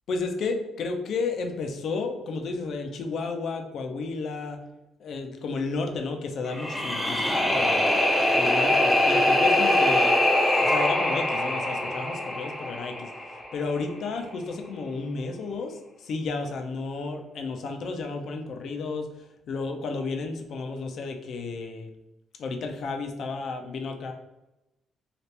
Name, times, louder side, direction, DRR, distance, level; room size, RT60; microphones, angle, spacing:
voice 1, 0.1-4.6 5.0-7.9 8.3-10.2 10.6-13.1 13.5-21.9 22.4-24.1, left 4 dB, 65° left, 4 dB, 0.5 m, -32 dB
sound 1, 6.5-13.6, left 1 dB, 10° left, 0.6 m, -23 dB
2.9 x 2.4 x 3.2 m, 0.94 s
cardioid pair, 90°, 0 cm